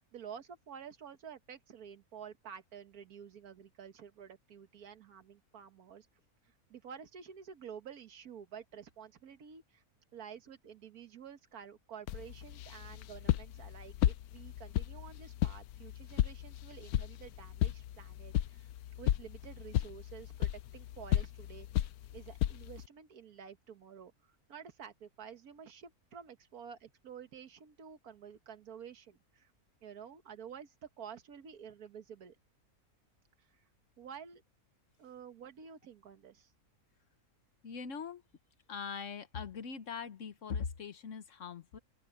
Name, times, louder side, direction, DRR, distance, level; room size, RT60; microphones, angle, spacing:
voice 1, 0.0-6.1 6.4-9.8 10.1-18.7 19.0-29.5 29.8-32.4 33.4-33.7 34.0-34.4 35.0-36.5, right 7 dB, 80° right, 1.7 m, -50 dB
sound 1, 12.1-22.9, left 13 dB, 85° left, 1.1 m, -35 dB
voice 2, 37.6-38.2 38.7-41.8, left 6 dB, 55° left, 1.3 m, -41 dB
open air
omnidirectional pair, 1.6 m